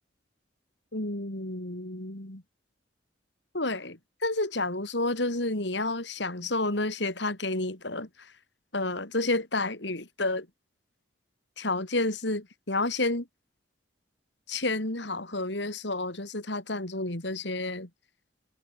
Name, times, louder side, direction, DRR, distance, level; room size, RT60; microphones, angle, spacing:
voice 1, 0.9-2.4 3.5-8.1 8.7-10.5 11.6-13.3 14.5-17.9, left 2 dB, 65° left, 3.6 m, -30 dB
head